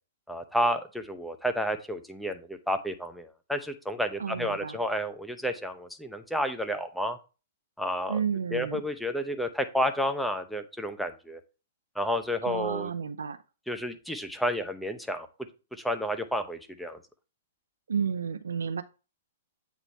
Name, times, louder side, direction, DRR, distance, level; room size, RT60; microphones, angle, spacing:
voice 1, 0.3-7.2 7.8-8.2 8.5-11.4 12.0-12.9 13.7-15.3 15.7-17.0, equal, ahead, 7 dB, 0.7 m, -31 dB
voice 2, 4.2-4.8 8.1-8.8 12.4-13.4 17.9-18.8, right 6 dB, 75° right, 11 dB, 0.3 m, -31 dB
8.1 x 3.0 x 4.3 m, 0.32 s
figure-of-eight pair, 115°, 0 cm